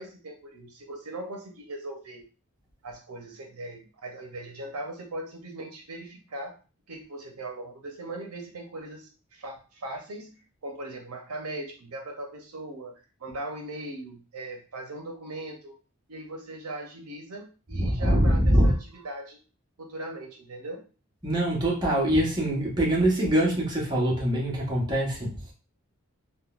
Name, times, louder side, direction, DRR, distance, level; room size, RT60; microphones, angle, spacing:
voice 1, 0.0-2.2 2.8-6.6 6.9-15.7 16.1-19.4 19.8-20.8, right 1 dB, 75° right, 2 dB, 0.6 m, -39 dB
voice 2, 17.7-18.7 21.2-25.5, right 1 dB, 20° right, -4 dB, 0.8 m, -23 dB
3.6 x 2.2 x 2.3 m, 0.35 s
head